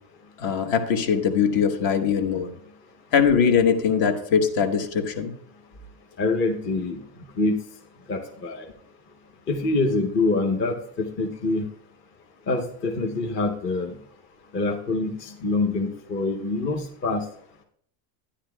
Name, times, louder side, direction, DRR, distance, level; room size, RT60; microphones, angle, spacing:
voice 1, 0.4-2.5 3.1-5.3, left 7 dB, 50° left, 6 dB, 1.2 m, -21 dB
voice 2, 6.2-7.0 7.4-7.6 8.1-8.7 9.5-11.7 12.5-13.9 14.5-17.2, left 3 dB, 25° left, 2 dB, 0.7 m, -25 dB
11.5 x 10.0 x 2.2 m, 0.65 s
cardioid pair, 150°, 45 cm